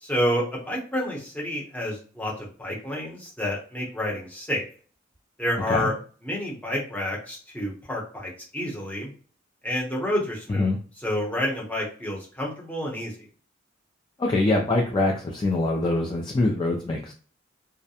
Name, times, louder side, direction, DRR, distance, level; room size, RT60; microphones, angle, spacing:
voice 1, 0.0-4.6 5.4-5.9 6.2-9.1 9.6-10.7 11.0-13.3, left 1 dB, 10° left, -3 dB, 0.8 m, -29 dB
voice 2, 14.2-17.1, left 2 dB, 25° left, 0 dB, 0.3 m, -24 dB
2.3 x 2.1 x 2.7 m, 0.41 s
head